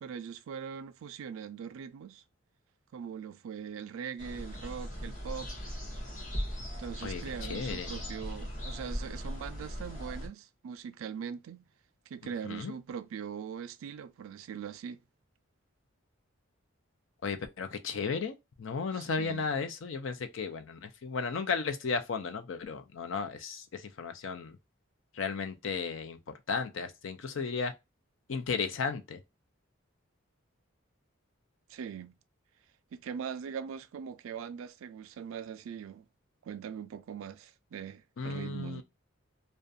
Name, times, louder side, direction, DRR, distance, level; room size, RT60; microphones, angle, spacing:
voice 1, 0.0-2.2 2.9-5.5 6.8-11.6 12.1-15.0 18.9-19.5 31.7-32.1 32.9-36.0 36.4-38.8, right 7 dB, 80° right, 0.3 m, -41 dB
sound 1, 4.2-10.3, equal, 40° left, 0.8 m, -39 dB
voice 2, 7.0-7.9 12.4-12.7 17.2-24.6 25.1-27.7 28.3-29.2 38.2-38.8, left 5 dB, 65° left, 0.5 m, -34 dB
2.4 x 2.2 x 2.5 m
head